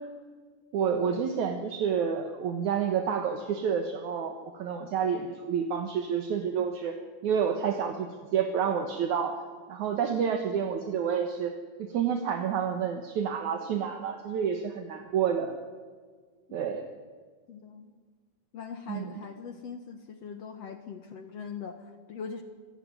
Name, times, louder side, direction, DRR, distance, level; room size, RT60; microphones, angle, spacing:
voice 1, 0.7-7.0 7.2-9.4 9.7-11.5 11.8-15.5 16.5-16.9 18.9-19.2, right 7 dB, 65° right, 5 dB, 2.7 m, -29 dB
voice 2, 17.5-17.9 18.5-22.4, left 6 dB, 60° left, 8 dB, 2.1 m, -41 dB
26.0 x 16.0 x 9.6 m, 1.5 s
omnidirectional pair, 3.8 m